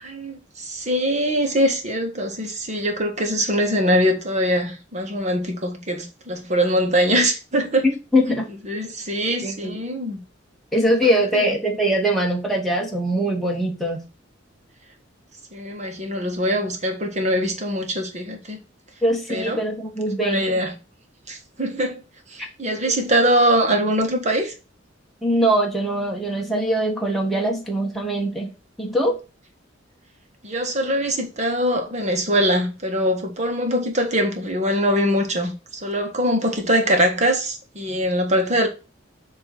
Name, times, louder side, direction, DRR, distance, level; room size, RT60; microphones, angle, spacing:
voice 1, 0.0-7.9 8.7-10.2 11.0-11.6 15.5-18.6 19.3-19.6 20.2-20.7 21.3-22.0 22.3-24.5 30.4-35.5 35.8-38.7, equal, 40° right, 1.7 m, -22 dB
voice 2, 7.8-8.5 9.4-9.8 10.7-14.0 19.0-20.6 22.4-22.5 22.9-23.0 25.2-28.5 28.8-29.2, equal, ahead, 1.5 m, -22 dB
7.7 x 3.2 x 5.8 m
head